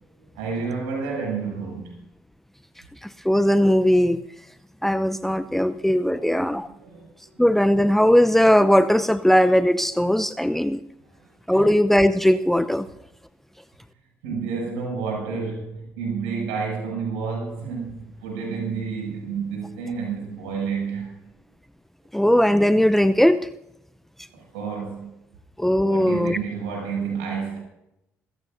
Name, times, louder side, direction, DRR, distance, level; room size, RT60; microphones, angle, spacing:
voice 1, 0.2-2.0 6.1-6.5 6.7-7.3 11.2-11.6 14.2-21.1 24.3-25.1 25.8-27.6, right 5 dB, 75° right, 7.2 m, -30 dB
voice 2, 3.2-4.2 4.8-6.7 7.4-10.8 11.5-12.9 22.1-23.4 25.6-26.4, equal, 5° left, 0.7 m, -19 dB
26.5 x 16.0 x 2.7 m
figure-of-eight pair, 50°, 7 cm